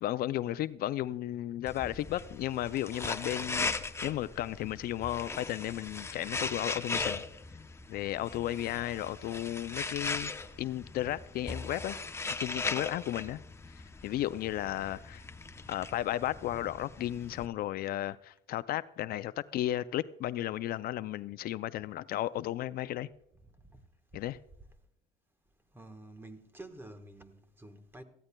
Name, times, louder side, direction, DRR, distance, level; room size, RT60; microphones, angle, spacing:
voice 1, 0.0-3.7 4.0-7.2 7.9-10.3 10.6-12.0 12.4-13.4 14.0-15.2 15.7-23.1 24.1-24.4, left 13 dB, 65° left, 0.4 m, -34 dB
sound 1, 1.7-17.5, left 3 dB, 15° left, 0.7 m, -39 dB
voice 2, 25.7-28.0, right 2 dB, 15° right, 1.2 m, -49 dB
18.5 x 14.5 x 2.2 m
cardioid pair, 110°, 17 cm